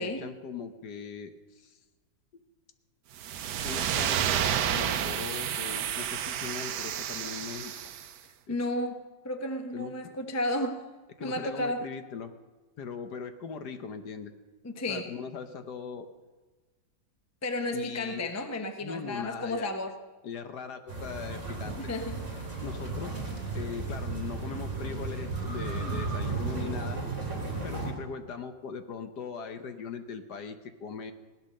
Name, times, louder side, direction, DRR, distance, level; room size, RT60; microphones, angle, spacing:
voice 1, 0.0-1.8 2.3-2.4 3.6-4.4 4.7-7.9 8.5-8.6 9.7-9.9 11.2-12.3 12.8-14.3 14.9-16.1 17.7-18.3 18.8-19.7 20.2-21.8 22.6-23.2 23.5-27.0 27.6-31.1, left 6 dB, 60° left, 8 dB, 1.4 m, -40 dB
sound 1, 3.2-8.1, right 9 dB, 65° right, 1.2 m, -30 dB
voice 2, 8.5-9.0 9.2-10.8 11.2-11.8 14.6-15.1 17.4-19.9 21.7-22.5 25.8-26.0 26.5-26.8, left 1 dB, 15° left, 6 dB, 0.5 m, -33 dB
sound 2, 20.9-27.9, right 3 dB, 35° right, 3.2 m, -34 dB
17.5 x 12.0 x 6.5 m, 1.2 s
omnidirectional pair, 2.1 m